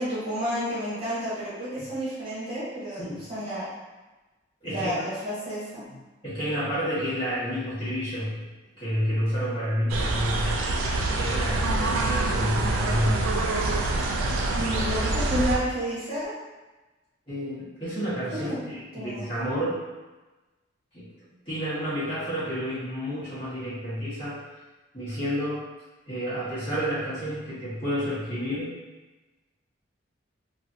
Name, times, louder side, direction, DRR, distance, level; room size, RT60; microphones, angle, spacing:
voice 1, 0.0-3.7 4.6-6.0 14.5-16.3 18.4-18.6 18.9-19.3, equal, 30° right, -12 dB, 1.2 m, -31 dB
voice 2, 4.6-4.9 6.2-8.4 8.7-10.6 11.1-13.3 13.8-14.6 17.3-19.8 20.9-21.1 21.4-24.4 24.9-25.6 26.1-28.7, equal, 25° left, -13 dB, 1.4 m, -30 dB
sound 1, 9.9-15.6, right 2 dB, 85° right, 0.4 m, -26 dB
3.0 x 2.5 x 2.7 m, 1.2 s
head